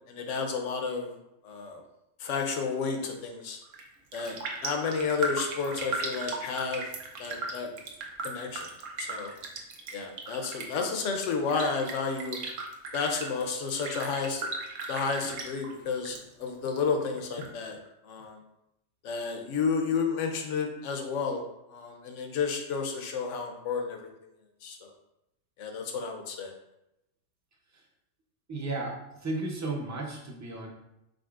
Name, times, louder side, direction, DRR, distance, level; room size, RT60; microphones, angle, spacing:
voice 1, 0.1-1.1 1.4-1.8 2.2-3.6 4.1-6.8 7.2-7.7 8.2-8.7 9.0-9.3 9.9-12.4 12.9-14.5 14.9-18.4 19.0-21.4 21.7-24.0 24.6-24.9 25.6-26.5, left 5 dB, 80° left, 4 dB, 1.0 m, -31 dB
Raindrop, 3.6-3.9 4.1-16.2 16.5-17.5 17.9-18.0, right 3 dB, 90° right, 1.1 m, -37 dB
voice 2, 28.5-30.7, right 2 dB, 20° right, 0 dB, 0.5 m, -34 dB
5.1 x 3.8 x 2.4 m, 0.87 s
omnidirectional pair, 1.3 m